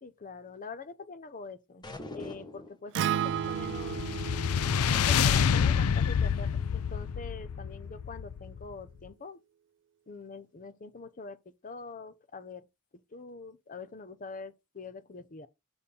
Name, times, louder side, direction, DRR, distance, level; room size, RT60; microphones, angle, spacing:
voice 1, 0.0-1.9 2.1-4.0 4.9-9.4 10.1-11.4 11.6-12.7 13.1-15.5, left 4 dB, 40° left, 0.7 m, -44 dB
sound 1, 1.8-2.9, left 2 dB, 20° left, 1.1 m, -42 dB
Acoustic guitar, 2.9-7.2, right 9 dB, 55° right, 0.3 m, -35 dB
sound 2, 3.4-8.8, left 7 dB, 75° left, 0.4 m, -28 dB
7.0 x 4.3 x 5.2 m
head